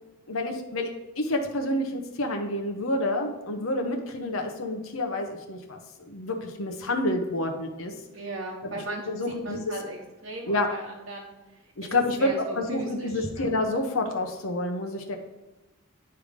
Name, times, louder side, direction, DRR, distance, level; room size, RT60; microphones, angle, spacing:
voice 1, 0.3-0.9 1.2-7.9 9.1-9.6 10.4-10.7 11.8-15.2, left 1 dB, 80° left, 3 dB, 0.9 m, -28 dB
voice 2, 8.1-10.0 10.2-11.3 11.8-13.5, right 2 dB, 85° right, -3 dB, 1.0 m, -37 dB
9.5 x 3.4 x 5.1 m, 1.1 s
head